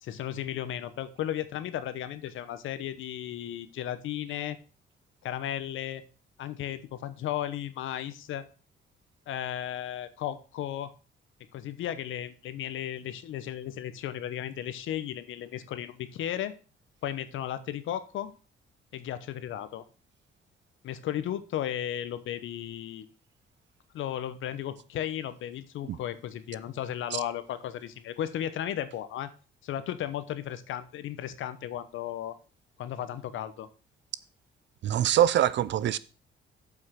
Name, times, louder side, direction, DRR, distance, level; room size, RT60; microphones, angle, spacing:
voice 1, 0.0-4.6 5.2-6.0 6.4-8.4 9.3-10.9 11.5-16.5 17.0-18.3 18.9-19.8 20.8-23.0 23.9-29.3 29.6-32.3 32.8-33.7, left 11 dB, 80° left, 1.0 m, -35 dB
voice 2, 34.8-36.0, right 11 dB, 65° right, 0.6 m, -23 dB
8.0 x 5.6 x 5.8 m
cardioid pair, 90°, 20 cm